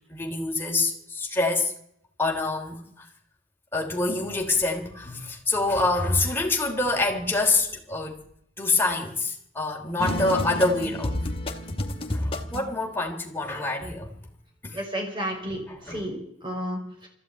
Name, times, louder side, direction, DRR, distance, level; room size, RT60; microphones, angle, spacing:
voice 1, 0.1-1.7 2.2-2.8 3.7-8.2 8.6-11.2 12.1-14.1 14.6-14.8 15.5-16.1, left 2 dB, 10° left, 3.3 m, -26 dB
sound 1, 10.0-12.8, left 1 dB, 30° left, 2.1 m, -30 dB
voice 2, 14.7-17.1, equal, 25° right, 6.0 m, -32 dB
20.5 x 14.5 x 9.4 m
head